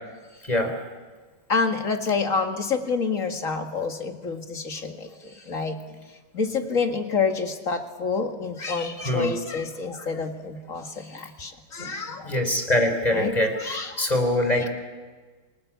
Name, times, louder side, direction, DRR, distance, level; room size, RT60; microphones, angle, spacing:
voice 1, 1.5-5.8 6.3-12.3 13.1-14.1, left 4 dB, 40° left, 5 dB, 2.2 m, -28 dB
voice 2, 12.2-14.7, left 1 dB, 20° left, 5 dB, 3.8 m, -24 dB
28.0 x 20.0 x 8.5 m, 1.4 s
omnidirectional pair, 2.2 m